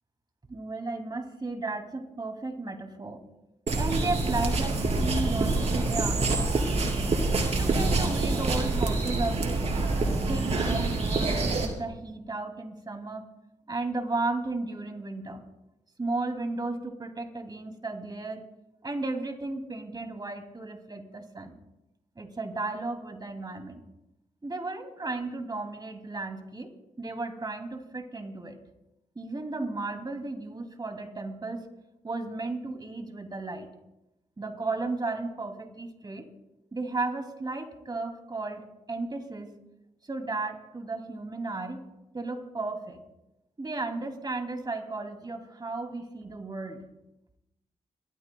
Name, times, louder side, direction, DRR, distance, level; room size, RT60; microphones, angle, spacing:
voice 1, 0.5-3.2 3.7-7.1 7.6-9.7 10.3-13.3 13.7-15.4 16.0-18.4 18.8-21.6 22.2-23.8 24.4-26.7 27.0-28.6 29.1-31.7 32.0-33.7 34.4-36.3 36.7-39.5 40.0-41.9 42.1-43.0 43.6-46.8, right 3 dB, 30° right, 4 dB, 2.7 m, -34 dB
sound 1, 3.7-11.7, right 3 dB, 55° right, 3.1 m, -26 dB
29.5 x 14.0 x 2.3 m, 0.90 s
supercardioid pair, 50°, 13 cm